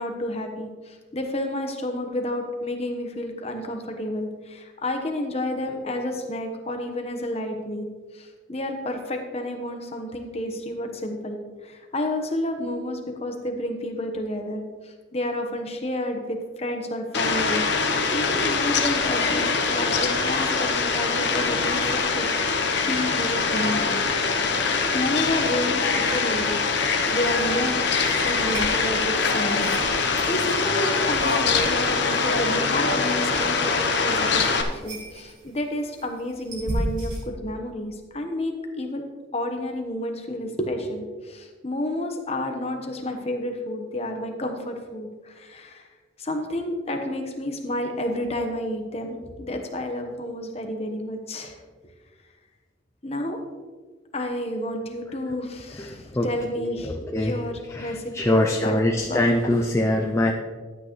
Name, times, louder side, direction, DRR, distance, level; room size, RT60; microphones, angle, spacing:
voice 1, 0.0-7.9 8.1-24.0 24.9-27.8 28.2-39.0 39.3-45.9 46.2-51.6 53.0-53.4 54.1-59.2, left 1 dB, 30° left, 4 dB, 1.1 m, -30 dB
Fowl, 17.1-34.6, left 4 dB, 55° left, 0.9 m, -23 dB
sound 1, 26.5-37.2, right 1 dB, 40° right, 3.2 m, -38 dB
voice 2, 55.8-57.4 57.7-60.3, left 1 dB, 15° left, 1 dB, 0.4 m, -24 dB
12.5 x 8.6 x 3.1 m, 1.4 s
head